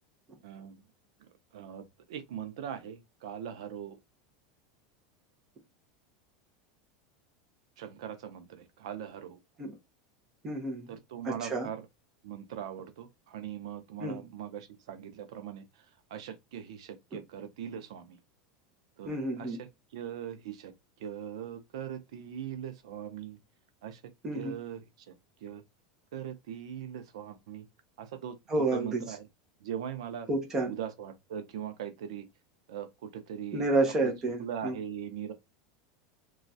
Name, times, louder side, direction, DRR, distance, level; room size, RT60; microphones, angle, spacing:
voice 1, 0.4-0.8 1.5-4.0 7.8-9.4 10.9-11.9 12.2-15.6 16.1-18.2 19.0-20.7 21.0-23.4 23.8-24.0 24.3-25.1 25.4-25.6 26.1-27.6 28.0-29.2 29.6-30.3 30.6-32.3 32.7-33.7 34.0-34.1 34.4-35.3, right 9 dB, 80° right, 0.5 m, -40 dB
voice 2, 10.4-10.9 11.2-11.7 14.0-14.2 19.1-19.6 24.2-24.6 28.5-29.0 30.3-30.7 33.5-34.8, right 2 dB, 15° right, 0.7 m, -30 dB
3.0 x 2.3 x 2.6 m
supercardioid pair, 170°, 3 cm